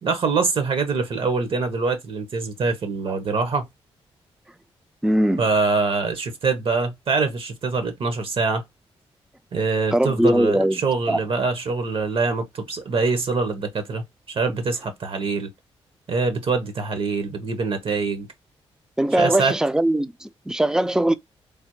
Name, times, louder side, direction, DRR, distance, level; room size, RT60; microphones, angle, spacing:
voice 1, 0.0-3.7 5.4-8.6 9.5-15.5 16.1-18.3 19.2-19.5, right 4 dB, 55° right, 0.9 m, -24 dB
voice 2, 5.0-5.4 9.9-10.8 11.1-11.2 19.0-21.1, right 1 dB, 5° right, 0.4 m, -20 dB
3.3 x 2.1 x 3.0 m
cardioid pair, 65°, 11 cm